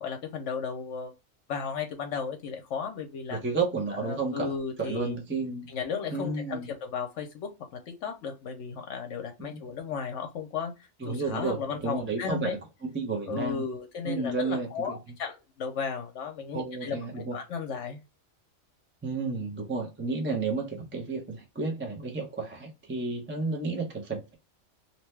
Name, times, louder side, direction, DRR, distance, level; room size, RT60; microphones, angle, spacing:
voice 1, 0.0-1.1 1.5-3.4 3.9-5.2 5.7-7.5 7.9-12.6 13.3-18.0, left 6 dB, 75° left, 0.9 m, -35 dB
voice 2, 3.3-5.7 6.1-6.7 9.4-9.6 11.0-13.6 14.0-15.0 16.5-17.4 19.0-24.3, right 3 dB, 15° right, 0.5 m, -32 dB
2.8 x 2.2 x 3.1 m
omnidirectional pair, 1.3 m